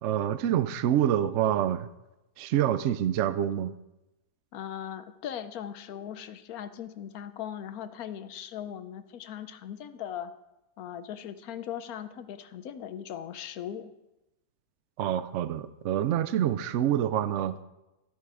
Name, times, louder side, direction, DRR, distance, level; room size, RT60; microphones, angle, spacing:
voice 1, 0.0-1.9 2.4-3.7 15.0-17.5, right 11 dB, 70° right, 13 dB, 0.7 m, -26 dB
voice 2, 4.5-10.3 10.8-13.9, left 9 dB, 70° left, 12 dB, 1.1 m, -39 dB
13.5 x 8.4 x 4.9 m, 0.95 s
omnidirectional pair, 1.8 m